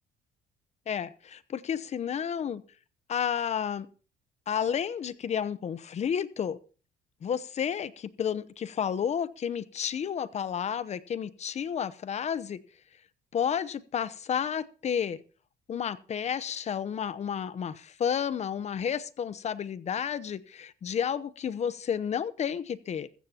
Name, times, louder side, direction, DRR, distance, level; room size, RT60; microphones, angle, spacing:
voice 1, 0.9-2.6 3.1-3.9 4.5-6.6 7.2-12.6 13.3-15.2 15.7-23.1, left 8 dB, 40° left, 0.8 m, -31 dB
15.0 x 14.0 x 2.9 m
cardioid pair, 110°, 17 cm